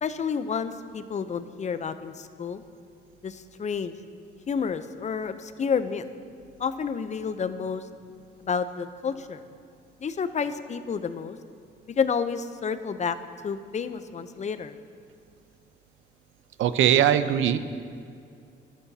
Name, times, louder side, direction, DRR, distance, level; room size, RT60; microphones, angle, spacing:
voice 1, 0.0-2.6 3.2-3.9 4.5-6.0 6.6-7.8 8.4-9.4 10.0-11.4 12.0-13.2 13.4-14.8, left 6 dB, 35° left, 11 dB, 0.6 m, -30 dB
voice 2, 16.6-17.6, right 10 dB, 80° right, 12 dB, 0.6 m, -20 dB
18.0 x 11.5 x 2.8 m, 2.3 s
cardioid pair, 90°, 20 cm